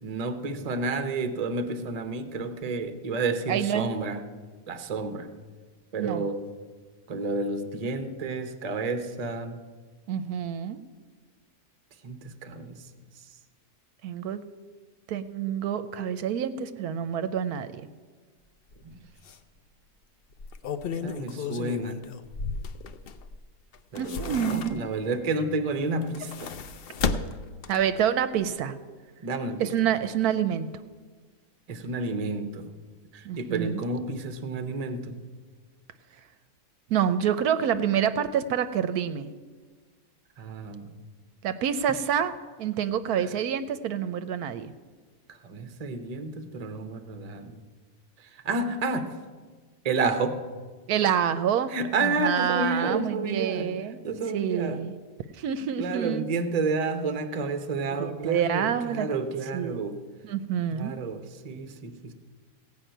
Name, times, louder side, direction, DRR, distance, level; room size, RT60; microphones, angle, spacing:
voice 1, 0.0-4.2 4.7-5.3 5.9-6.4 7.1-9.6 12.0-12.8 18.8-19.0 21.0-22.1 23.9-26.5 29.2-29.7 31.7-32.7 33.1-35.2 40.4-40.9 45.3-47.6 48.2-49.2 49.8-50.4 51.7-53.8 54.0-54.8 55.8-60.0 60.8-62.1, right 3 dB, 35° right, 8 dB, 0.7 m, -30 dB
voice 2, 3.5-3.9 6.0-6.3 10.1-10.8 14.0-14.4 15.1-17.8 24.0-24.9 27.7-28.7 29.6-30.7 33.2-33.8 36.9-39.3 41.4-44.7 50.9-51.7 52.0-54.0 54.3-54.9 55.3-56.2 57.9-59.1 59.5-59.8 60.2-60.9, right 9 dB, 75° right, 12 dB, 1.1 m, -27 dB
sound 1, 18.7-18.8 19.2-19.4 20.3-23.4 23.7-25.1 25.9-28.0 28.4-28.5, left 5 dB, 70° left, 0.5 m, -34 dB
16.0 x 5.5 x 9.1 m, 1.5 s
omnidirectional pair, 1.7 m